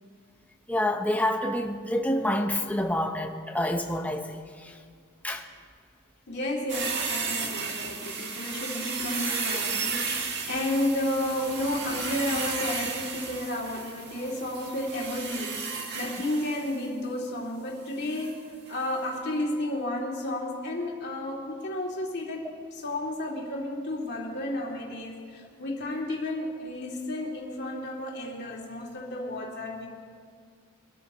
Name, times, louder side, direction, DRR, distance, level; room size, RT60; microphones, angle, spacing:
voice 1, 0.7-4.7 5.2-5.4, left 1 dB, 5° left, 3 dB, 0.9 m, -28 dB
voice 2, 6.3-29.9, left 1 dB, 50° left, -2 dB, 2.7 m, -32 dB
sound 1, 6.7-16.8 18.1-18.3 18.7-18.8, right 5 dB, 50° right, 1.5 m, -33 dB
24.5 x 13.0 x 3.1 m, 2.1 s
head